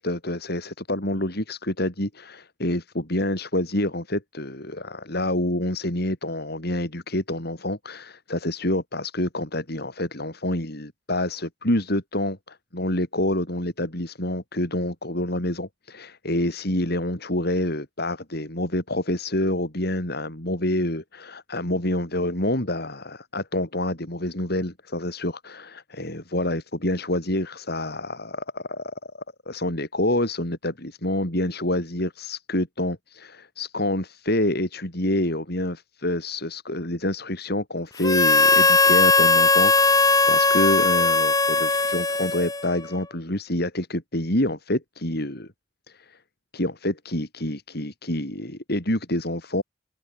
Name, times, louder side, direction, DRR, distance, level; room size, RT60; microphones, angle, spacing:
voice 1, 0.0-29.1 29.5-45.5 45.9-46.2 46.5-49.6, left 1 dB, 60° left, 6.3 m, -27 dB
Harmonica, 38.0-42.9, left 3 dB, 20° left, 2.4 m, -19 dB
head